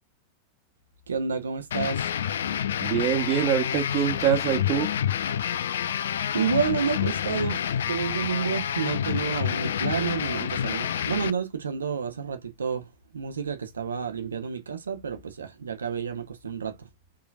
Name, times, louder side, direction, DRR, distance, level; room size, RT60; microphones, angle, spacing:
voice 1, 1.1-2.1 6.3-7.6 7.9-12.9 13.1-16.7, right 6 dB, 70° right, 0.9 m, -30 dB
sound 1, 1.7-11.3, left 9 dB, 65° left, 0.4 m, -28 dB
voice 2, 2.8-4.9, right 10 dB, 40° right, 1.1 m, -24 dB
4.8 x 3.2 x 2.3 m
figure-of-eight pair, 90°, 0 cm